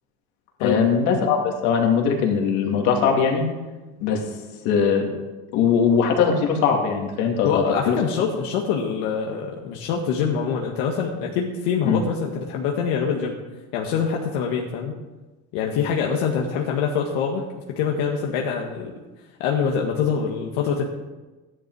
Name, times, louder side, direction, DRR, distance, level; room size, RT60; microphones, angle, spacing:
voice 1, 0.6-3.5 4.0-4.2 4.6-5.1 5.5-8.0 11.9-12.0, left 6 dB, 60° left, 2 dB, 2.5 m, -20 dB
voice 2, 7.4-13.4 13.7-14.9 15.5-17.4 17.7-18.9 19.4-20.8, left 6 dB, 80° left, -1 dB, 1.7 m, -24 dB
13.5 x 10.5 x 4.8 m, 1.2 s
cardioid pair, 165°, 32 cm